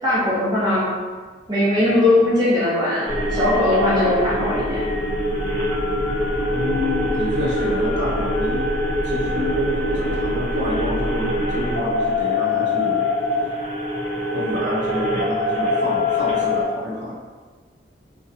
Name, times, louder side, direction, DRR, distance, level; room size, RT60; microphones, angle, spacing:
voice 1, 0.0-0.9 1.5-4.8, left 1 dB, 25° right, -8 dB, 0.7 m, -19 dB
sound 1, 3.1-16.6, left 2 dB, 45° left, 0.6 m, -23 dB
voice 2, 6.5-8.7 9.0-13.0 14.3-17.2, left 1 dB, 75° right, -5 dB, 0.5 m, -28 dB
2.7 x 2.2 x 2.4 m, 1.5 s
head